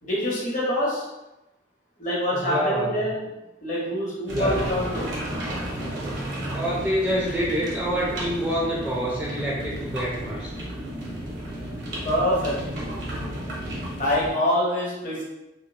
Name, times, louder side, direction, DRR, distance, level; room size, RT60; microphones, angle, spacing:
voice 1, 0.0-1.0 2.0-3.3 3.6-5.1 12.0-12.5 14.0-15.2, left 1 dB, 45° left, -5 dB, 0.8 m, -25 dB
voice 2, 2.3-2.9 4.3-4.8 6.5-10.5, equal, 10° right, -6 dB, 0.3 m, -27 dB
sound 1, 4.3-14.3, right 1 dB, 80° right, 0.7 m, -33 dB
2.8 x 2.2 x 2.2 m, 0.98 s
head